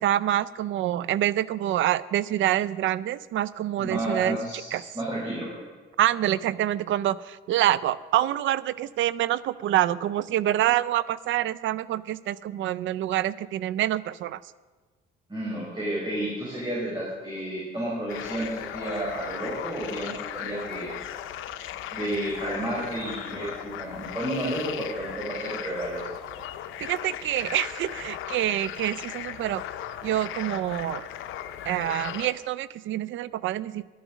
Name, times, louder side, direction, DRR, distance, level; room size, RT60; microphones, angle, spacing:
voice 1, 0.0-4.4 4.7-4.8 6.0-14.4 26.8-29.6 30.0-31.1 31.7-33.8, right 13 dB, 75° right, 19 dB, 0.5 m, -26 dB
voice 2, 3.8-5.5 15.3-20.9 21.9-26.0, right 1 dB, 20° right, -6 dB, 4.7 m, -31 dB
sound 1, 18.1-32.3, left 11 dB, 90° left, 0.7 m, -37 dB
11.0 x 10.5 x 6.2 m, 1.4 s
cardioid pair, 90°, 20 cm